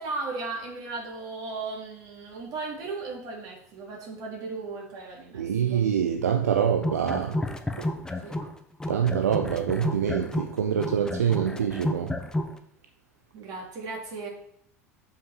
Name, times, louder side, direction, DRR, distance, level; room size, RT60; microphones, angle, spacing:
voice 1, 0.0-5.9 8.2-8.4 13.3-14.3, right 3 dB, 50° right, 3.6 m, -36 dB
voice 2, 5.3-7.4 7.8-7.9 8.4-8.5 8.9-12.1, right 8 dB, 80° right, 0.6 m, -25 dB
sound 1, 6.7-8.5 8.8-12.6, left 1 dB, 10° left, 1.0 m, -31 dB
7.2 x 5.7 x 6.1 m
hypercardioid pair, 75°, 8 cm